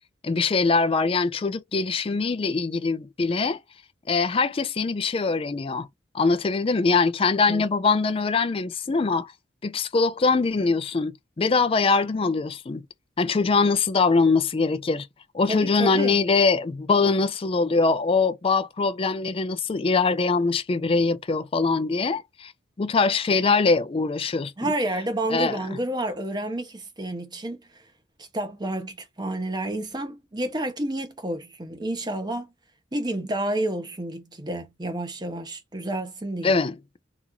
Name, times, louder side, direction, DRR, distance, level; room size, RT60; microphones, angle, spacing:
voice 1, 0.2-3.6 4.1-5.9 6.1-9.3 9.6-12.8 13.2-15.1 15.3-22.5 22.8-24.7 25.3-25.6 36.4-36.8, left 4 dB, 30° left, 0.4 m, -23 dB
voice 2, 15.5-16.2 24.6-27.6 28.2-32.5 32.9-36.5, right 1 dB, 20° right, 0.8 m, -30 dB
2.9 x 2.5 x 3.8 m
head